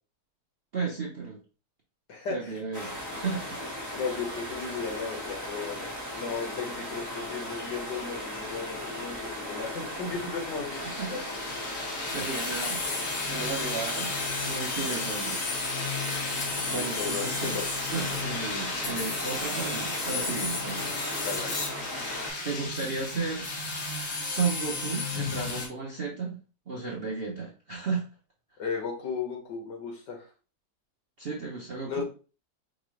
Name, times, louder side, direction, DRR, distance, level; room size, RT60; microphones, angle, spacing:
voice 1, 0.7-1.4 2.3-3.6 11.0-11.2 11.7-14.1 14.4-15.4 16.7-17.6 17.9-20.9 22.4-23.5 24.2-26.4 26.7-28.1 31.2-32.0, right 4 dB, 45° right, -3 dB, 0.8 m, -34 dB
voice 2, 2.1-2.6 4.0-10.8 11.1-11.2 16.7-17.6 21.2-21.6 28.6-30.3 31.9-32.0, left 5 dB, 70° left, 0 dB, 2.0 m, -35 dB
sound 1, 2.7-22.3, left 1 dB, 10° right, 1.2 m, -37 dB
sound 2, 10.7-25.7, left 3 dB, 50° left, 1.4 m, -33 dB
5.2 x 2.6 x 3.1 m, 0.35 s
omnidirectional pair, 2.0 m